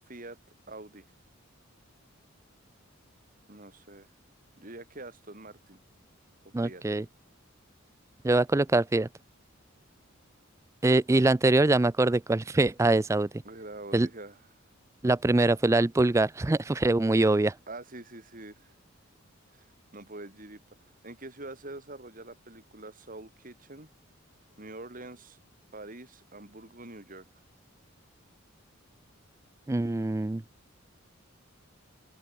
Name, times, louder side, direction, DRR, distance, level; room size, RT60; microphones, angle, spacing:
voice 1, 0.1-0.4 0.7-1.0 3.5-4.1 4.6-5.8 6.4-6.8 13.4-14.4 17.7-18.7 19.5-19.7 19.9-23.9 24.6-25.4 25.7-27.3, right 2 dB, 40° right, 3.2 m, -45 dB
voice 2, 6.5-7.1 8.2-9.1 10.8-13.3 13.9-14.1 15.0-17.5 29.7-30.4, right 2 dB, 15° right, 0.4 m, -23 dB
head